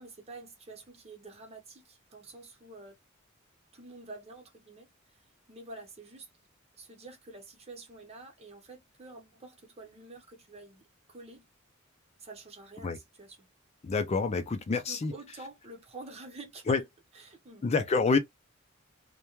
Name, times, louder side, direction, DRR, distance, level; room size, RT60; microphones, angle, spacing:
voice 1, 0.0-3.0 3.7-6.3 6.8-10.8 11.1-11.5 12.2-13.4 14.9-16.9 17.1-17.7, right 3 dB, 30° right, 0.8 m, -48 dB
voice 2, 13.8-15.1 16.7-16.8 17.6-18.2, left 4 dB, 30° left, 0.3 m, -27 dB
2.2 x 2.2 x 3.0 m
head